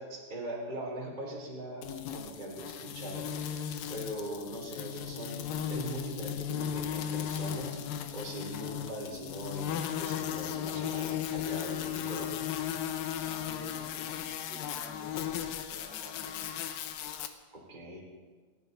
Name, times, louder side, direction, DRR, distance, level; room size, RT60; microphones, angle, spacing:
voice 1, 0.0-7.8 8.1-12.5 17.5-18.0, right 1 dB, 10° right, -3 dB, 3.0 m, -41 dB
sound 1, 1.8-17.3, left 9 dB, 75° left, 2.3 m, -36 dB
voice 2, 13.2-16.6, equal, 30° right, -4 dB, 3.3 m, -51 dB
28.5 x 12.0 x 4.1 m, 1.4 s
omnidirectional pair, 4.9 m